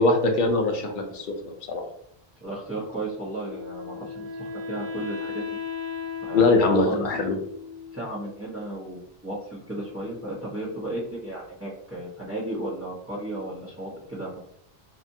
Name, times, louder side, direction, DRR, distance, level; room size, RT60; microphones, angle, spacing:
voice 1, 0.0-1.8 6.3-7.3, left 3 dB, 60° left, 3 dB, 0.7 m, -22 dB
voice 2, 2.4-5.4 6.2-7.1 7.9-14.5, right 1 dB, 15° right, -7 dB, 0.9 m, -34 dB
Wind instrument woodwind instrument, 3.3-8.4, left 6 dB, 40° right, 1.7 m, -36 dB
2.8 x 2.4 x 2.6 m, 0.67 s
omnidirectional pair, 1.1 m